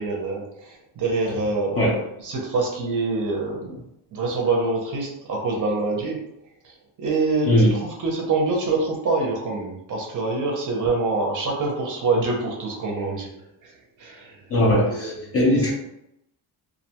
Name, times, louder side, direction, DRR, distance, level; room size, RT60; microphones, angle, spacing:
voice 1, 0.0-3.7 4.1-6.2 7.0-13.3 13.6-13.7 14.0-14.4 14.8-15.1 15.6-15.7, right 3 dB, 40° right, -1 dB, 0.5 m, -25 dB
voice 2, 14.5-15.7, equal, 30° left, -4 dB, 0.4 m, -19 dB
2.4 x 2.2 x 2.8 m, 0.82 s
cardioid pair, 175°, 48 cm